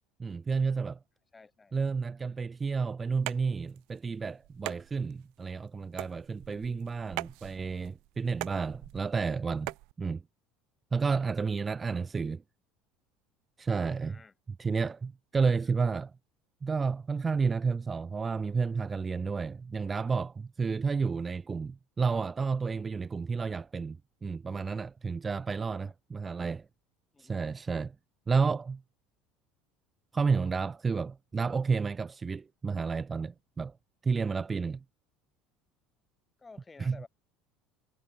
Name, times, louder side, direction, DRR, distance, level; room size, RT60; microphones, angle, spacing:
voice 1, 0.2-1.0 1.7-10.2 10.9-12.4 13.6-14.2 14.6-16.1 16.6-26.6 27.2-27.9 28.3-28.8 30.1-33.7 34.0-34.8 36.8-37.0, right 5 dB, 20° right, 1.0 m, -31 dB
voice 2, 1.3-1.7 6.5-7.0 14.0-14.3 25.5-25.9 27.1-27.4 36.4-37.1, left 4 dB, 15° left, 7.2 m, -54 dB
sound 1, 3.1-9.9, right 27 dB, 70° right, 1.6 m, -43 dB
cardioid pair, 140°, 0 cm